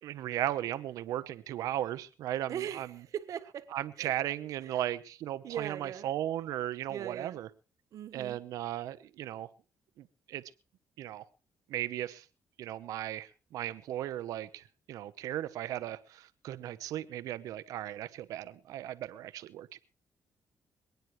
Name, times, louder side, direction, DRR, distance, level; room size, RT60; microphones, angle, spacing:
voice 1, 0.0-3.0 3.7-7.5 8.1-9.5 10.0-10.4 11.0-11.2 11.7-12.3 12.6-19.8, right 12 dB, 90° right, 14 dB, 0.9 m, -36 dB
voice 2, 2.5-3.7 4.0-4.1 4.6-4.8 5.4-6.1 6.9-7.4 7.9-8.4, right 9 dB, 70° right, 10 dB, 1.5 m, -40 dB
27.0 x 9.4 x 3.2 m, 0.35 s
cardioid pair, 80°, 6 cm